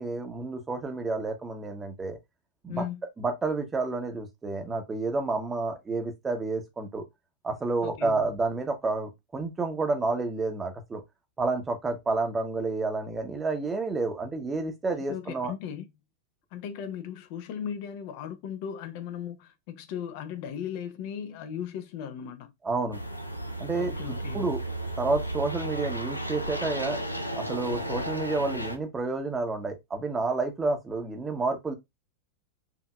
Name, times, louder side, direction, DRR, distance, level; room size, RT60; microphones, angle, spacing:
voice 1, 0.0-2.2 2.6-2.8 3.2-7.0 7.4-11.0 11.4-15.5 22.6-23.0 23.6-24.6 25.0-27.0 27.4-31.7, right 3 dB, 15° right, 0.9 m, -30 dB
voice 2, 2.7-3.0 7.8-8.2 15.1-15.9 16.5-22.5 23.8-24.4, left 8 dB, 45° left, 0.7 m, -37 dB
sound 1, 22.9-28.8, right 1 dB, 85° left, 0.5 m, -33 dB
4.9 x 2.8 x 2.2 m
figure-of-eight pair, 90°, 0 cm